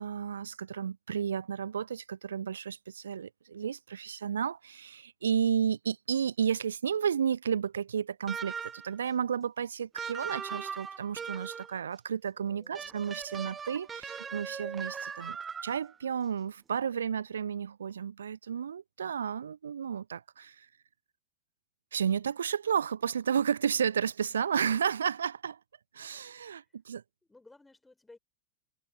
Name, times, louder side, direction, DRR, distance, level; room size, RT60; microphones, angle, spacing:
voice 1, 0.0-15.4 15.6-20.7 21.9-25.6 25.9-27.0, right 7 dB, 70° right, 0.6 m, -32 dB
sound 1, 8.3-9.0 10.0-11.8 12.7-15.9, right 6 dB, 20° right, 0.3 m, -39 dB
voice 2, 12.3-13.0 26.5-26.7 27.3-28.2, left 2 dB, 10° left, 5.3 m, -57 dB
figure-of-eight pair, 90°, 0 cm